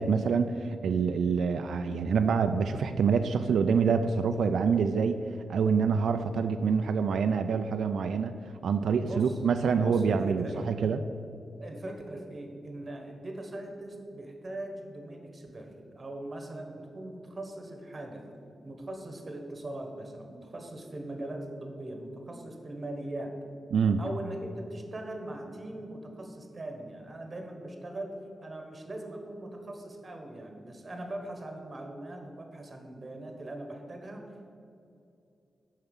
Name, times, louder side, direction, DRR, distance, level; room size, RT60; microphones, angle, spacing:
voice 1, 0.0-11.0 23.7-24.0, right 5 dB, 85° right, 8 dB, 0.4 m, -26 dB
voice 2, 9.0-9.4 9.7-10.7 11.6-18.2 18.6-23.3 24.0-34.3, right 1 dB, 30° right, 3 dB, 1.2 m, -40 dB
6.9 x 5.6 x 7.1 m, 2.6 s
wide cardioid pair, 155°, 0 cm